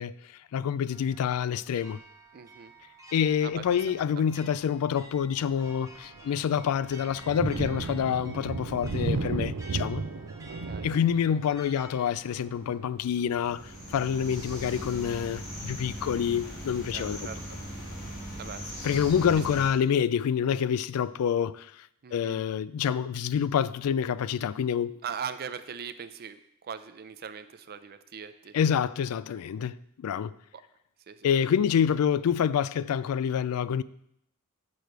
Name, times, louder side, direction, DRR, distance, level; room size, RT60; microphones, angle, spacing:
voice 1, 0.0-2.0 3.1-10.0 10.8-17.3 18.8-25.0 28.5-30.3 31.2-33.8, left 8 dB, 80° left, 0.3 m, -27 dB
sound 1, 0.9-13.9, right 2 dB, 15° right, 1.0 m, -52 dB
voice 2, 2.3-2.7 3.4-3.6 10.5-10.9 16.9-17.6 18.4-18.9 22.0-22.4 25.0-28.6 30.5-30.6 31.1-31.3, right 7 dB, 45° right, 0.5 m, -40 dB
Thunder, 3.5-3.9 4.4-4.6 5.0-15.6, right 3 dB, 90° right, 0.6 m, -36 dB
sound 2, 13.4-19.7, equal, 60° left, 2.7 m, -39 dB
8.5 x 6.5 x 4.6 m
head